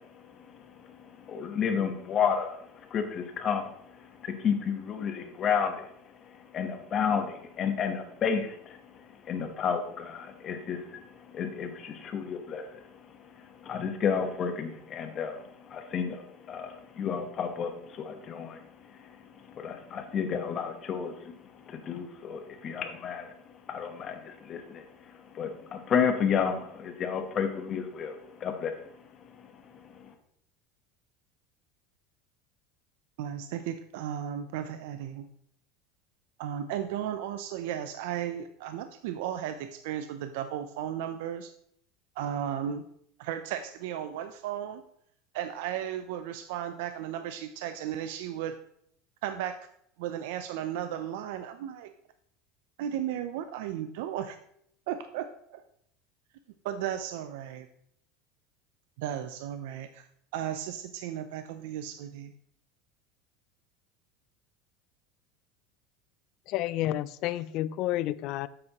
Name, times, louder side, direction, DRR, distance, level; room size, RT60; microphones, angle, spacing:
voice 1, 0.3-5.9 6.2-12.8 13.4-18.6 19.0-21.3 21.7-23.3 23.7-24.8 25.3-28.8 29.9-30.1, left 7 dB, 30° left, 6 dB, 1.1 m, -32 dB
voice 2, 33.2-35.3 36.4-41.5 42.2-42.8 43.2-44.8 45.3-48.6 49.2-49.7 50.0-51.9 52.8-54.4 54.9-55.6 56.6-57.7 59.0-60.1 60.3-62.3, right 10 dB, 70° right, 9 dB, 0.5 m, -35 dB
voice 3, 66.5-68.5, left 14 dB, 45° left, 17 dB, 0.3 m, -30 dB
9.3 x 7.9 x 3.0 m, 0.69 s
cardioid pair, 165°, 0 cm